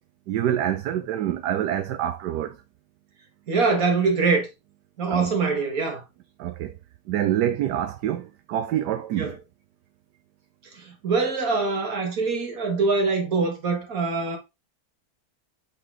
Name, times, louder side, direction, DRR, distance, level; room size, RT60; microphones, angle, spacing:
voice 1, 0.3-2.6 5.1-5.3 6.4-6.7 7.1-9.4, right 11 dB, 75° right, 1.2 m, -26 dB
voice 2, 3.5-4.5 5.0-6.0 9.2-9.3 11.0-14.4, right 4 dB, 55° right, 2.2 m, -23 dB
7.8 x 4.0 x 3.8 m
omnidirectional pair, 1.8 m